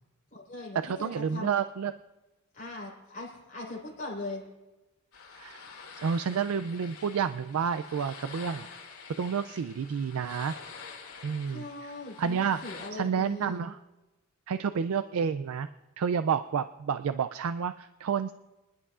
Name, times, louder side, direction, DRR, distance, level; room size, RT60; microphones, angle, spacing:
voice 1, 0.3-1.5 2.5-4.4 11.5-13.6, left 2 dB, 35° left, -6 dB, 4.1 m, -40 dB
voice 2, 0.8-1.9 5.4-5.6 5.9-8.7 9.2-10.5 11.2-11.9 12.2-12.6 12.9-13.8 14.5-15.7 16.0-18.3, right 6 dB, 70° right, 12 dB, 0.4 m, -30 dB
sound 1, 5.1-12.9, left 5 dB, 75° left, 2.3 m, -47 dB
26.0 x 11.0 x 2.4 m, 1.1 s
head